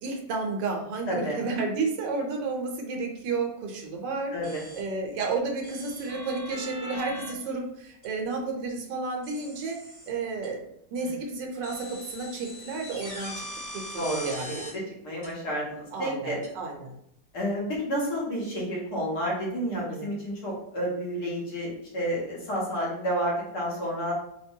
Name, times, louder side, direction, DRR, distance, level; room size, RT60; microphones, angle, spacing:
voice 1, 0.0-4.3 4.7-9.8 10.1-10.6 10.9-13.5 13.7-14.7 15.9-16.9 19.7-20.1, right 3 dB, 85° right, 1 dB, 1.4 m, -32 dB
voice 2, 1.1-1.4 4.3-4.6 14.0-14.3 14.7-16.4 17.3-24.1, equal, 65° left, -4 dB, 1.5 m, -30 dB
sound 1, 4.4-4.8 5.6-7.3 8.0-8.1 9.2-10.1 10.4-10.5 11.6-14.7 15.2-15.3 16.4-16.5, left 1 dB, 35° left, 0.8 m, -41 dB
4.3 x 2.2 x 2.7 m, 0.76 s
omnidirectional pair, 1.9 m